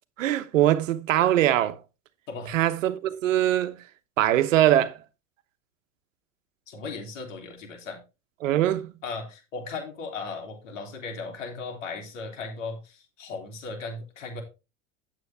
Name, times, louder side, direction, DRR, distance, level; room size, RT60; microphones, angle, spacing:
voice 1, 0.2-1.8 2.5-3.8 4.2-5.0 8.4-8.9, right 12 dB, 85° right, 1.1 m, -22 dB
voice 2, 6.7-8.0 9.0-14.4, left 4 dB, 85° left, 3.1 m, -37 dB
9.0 x 7.8 x 3.5 m
hypercardioid pair, 100°, 37 cm